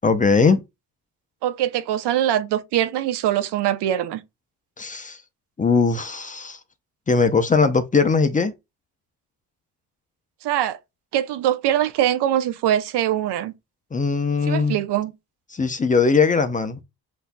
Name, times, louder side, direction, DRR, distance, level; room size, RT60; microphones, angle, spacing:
voice 1, 0.0-0.6 4.8-5.2 5.6-6.6 7.1-8.5 13.9-14.8 15.5-16.8, left 4 dB, 20° left, 0.6 m, -20 dB
voice 2, 1.4-4.2 10.4-10.8 11.1-13.5 14.5-15.1, right 11 dB, 80° right, 0.7 m, -22 dB
7.9 x 2.7 x 2.2 m
cardioid pair, 115°, 40 cm